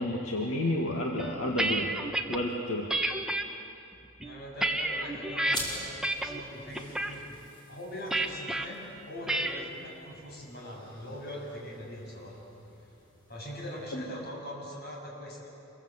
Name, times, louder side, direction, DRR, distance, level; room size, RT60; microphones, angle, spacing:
voice 1, 0.0-1.9 2.3-3.0 13.9-14.0, left 1 dB, 75° left, -1 dB, 2.2 m, -30 dB
sound 1, 1.2-2.4 2.9-3.4 4.0-5.6 6.0-6.4 6.7-7.1 8.1-8.6 9.3-9.7, right 1 dB, 5° right, 1.2 m, -30 dB
voice 2, 4.2-7.4 7.7-12.6 13.3-15.5, equal, 50° left, -3 dB, 7.7 m, -42 dB
sound 2, 5.5-14.4, equal, 20° left, 6.8 m, -46 dB
27.5 x 22.5 x 8.3 m, 2.7 s
head